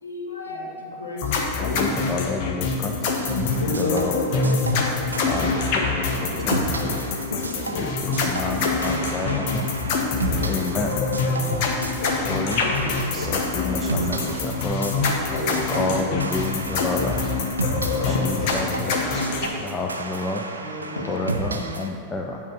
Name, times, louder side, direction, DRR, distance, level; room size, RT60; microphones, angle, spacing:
voice 1, 0.0-1.8 2.9-3.0 3.4-4.1 4.4-4.6 5.1-5.3 5.7-5.8 6.4-6.5 6.9-7.0 7.3-7.8 8.2-8.3 8.8-9.4 9.8-10.0 10.3-10.5 12.0-12.3 13.1-13.3 15.2-15.4 15.9-16.1 17.9-18.5 19.3-19.5 20.9-21.3, left 2 dB, 80° left, -3 dB, 1.5 m, -33 dB
sound 1, 1.2-19.5, left 4 dB, 45° left, 1.0 m, -25 dB
voice 2, 1.7-3.0 3.8-4.6 5.2-5.7 5.9-7.0 7.8-9.7 10.4-11.0 12.1-12.6 13.2-15.0 15.7-17.3 18.0-19.0 19.6-20.5 21.1-22.4, left 3 dB, 15° left, 0 dB, 0.5 m, -30 dB
sound 2, 3.1-21.9, right 3 dB, 75° right, 0.5 m, -33 dB
voice 3, 10.2-10.6 11.4-11.8 12.8-13.4 13.8-13.9 15.4-15.8 17.9-18.1 19.1-19.5 20.6-21.0 21.6-21.9, right 3 dB, 25° right, -1 dB, 1.3 m, -38 dB
8.9 x 3.7 x 6.6 m, 2.4 s
figure-of-eight pair, 90°, 0 cm